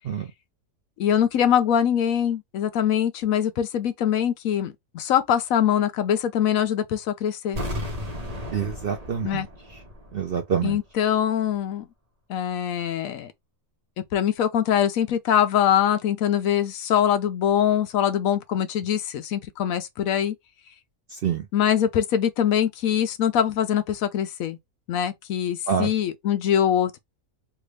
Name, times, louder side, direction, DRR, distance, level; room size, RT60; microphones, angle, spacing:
voice 1, 1.0-7.6 9.2-9.5 10.6-11.9 12.3-13.3 14.1-20.3 21.5-24.6 24.9-27.0, left 9 dB, 70° left, 1.0 m, -23 dB
sound 1, 7.5-10.4 10.7-10.8, left 1 dB, 30° right, 0.9 m, -34 dB
voice 2, 8.5-9.4 10.1-10.8 21.1-21.4 25.7-25.9, right 7 dB, 60° right, 0.6 m, -26 dB
3.4 x 2.4 x 3.2 m
omnidirectional pair, 1.5 m